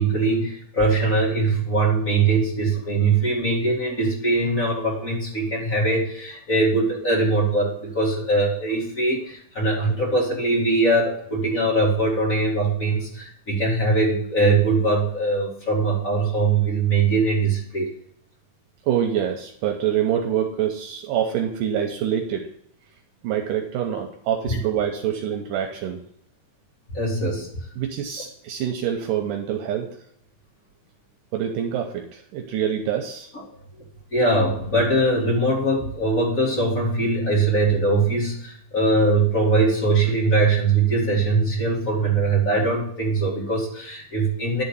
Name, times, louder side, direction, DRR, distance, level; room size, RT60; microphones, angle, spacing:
voice 1, 0.0-17.9 24.5-24.6 26.9-27.5 34.1-44.6, right 2 dB, 30° left, -5 dB, 2.1 m, -21 dB
voice 2, 18.8-22.5 23.2-26.0 27.8-29.9 31.3-33.3, right 9 dB, 80° right, 3 dB, 2.2 m, -25 dB
11.0 x 3.8 x 6.9 m, 0.67 s
omnidirectional pair, 3.9 m